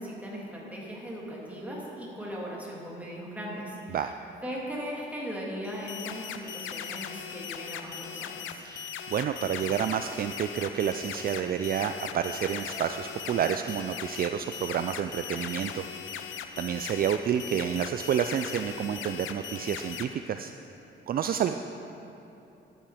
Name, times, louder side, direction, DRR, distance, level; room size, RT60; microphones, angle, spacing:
voice 1, 0.0-4.0 4.4-8.6, equal, 5° right, -5 dB, 2.7 m, -38 dB
sound 1, 5.6-20.0, left 8 dB, 80° left, 0.7 m, -39 dB
voice 2, 8.6-15.8 16.1-16.3 16.6-20.5 21.1-21.5, right 8 dB, 50° right, 8 dB, 0.4 m, -29 dB
11.5 x 8.8 x 5.0 m, 3.0 s
cardioid pair, 90°, 20 cm